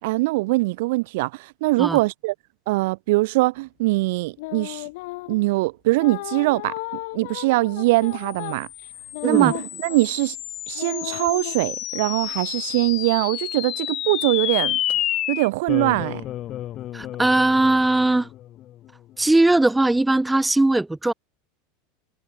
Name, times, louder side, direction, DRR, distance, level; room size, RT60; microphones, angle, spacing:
voice 1, 0.0-2.3 2.7-4.8 5.3-6.7 7.1-8.7 9.2-10.4 10.7-14.8 15.3-16.2, right 22 dB, 65° right, 5.1 m, -22 dB
sound 1, 4.4-5.5 6.0-10.3 10.7-11.5, left 22 dB, 65° left, 2.6 m, -35 dB
sound 2, 8.2-18.9, left 13 dB, 35° left, 3.3 m, -30 dB
voice 2, 9.2-9.5 16.9-18.3 19.2-21.1, right 2 dB, 5° right, 1.2 m, -19 dB
supercardioid pair, 150°, 0 cm